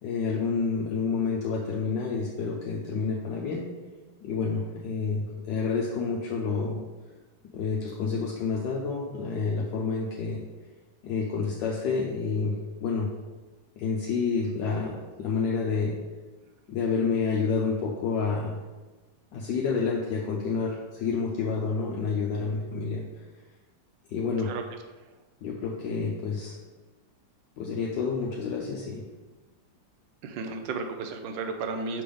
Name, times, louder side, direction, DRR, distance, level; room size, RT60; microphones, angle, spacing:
voice 1, 0.0-3.7 4.2-6.8 7.5-10.4 11.0-13.1 13.8-16.0 16.7-18.6 19.3-23.0 24.1-24.5 25.4-26.6 27.6-29.0, left 4 dB, 75° left, -3 dB, 1.3 m, -29 dB
voice 2, 30.2-32.0, right 4 dB, 85° right, 6 dB, 1.3 m, -33 dB
5.8 x 3.4 x 5.4 m, 1.2 s
omnidirectional pair, 2.0 m